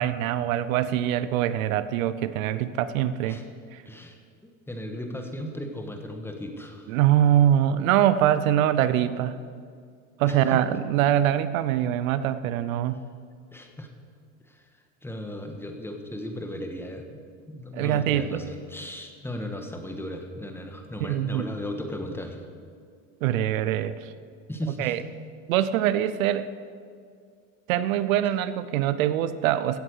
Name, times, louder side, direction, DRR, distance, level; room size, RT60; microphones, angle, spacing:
voice 1, 0.0-3.4 3.7-3.8 6.9-9.3 10.2-13.0 17.7-18.4 21.0-21.5 23.2-24.1 24.8-25.0 25.5-26.5 27.7-29.8, right 11 dB, 85° right, 14 dB, 0.7 m, -23 dB
voice 2, 3.8-6.9 10.3-10.6 13.5-13.9 14.5-14.7 15.0-22.5 24.5-25.0, equal, 5° left, 4 dB, 1.5 m, -36 dB
15.5 x 7.9 x 6.4 m, 2.2 s
supercardioid pair, 110°, 40 cm